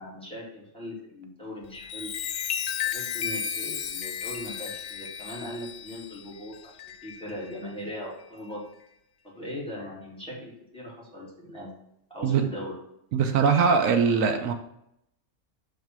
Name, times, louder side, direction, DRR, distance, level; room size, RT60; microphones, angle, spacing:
voice 1, 0.0-2.1 2.8-8.6 9.2-11.7 12.1-12.7, left 1 dB, 5° left, -6 dB, 2.4 m, -39 dB
Chime, 1.6-7.6 8.2-8.5, left 8 dB, 75° left, 0.9 m, -34 dB
voice 2, 13.1-14.5, right 6 dB, 80° right, 7 dB, 1.1 m, -21 dB
6.5 x 3.5 x 5.9 m, 0.78 s
omnidirectional pair, 1.4 m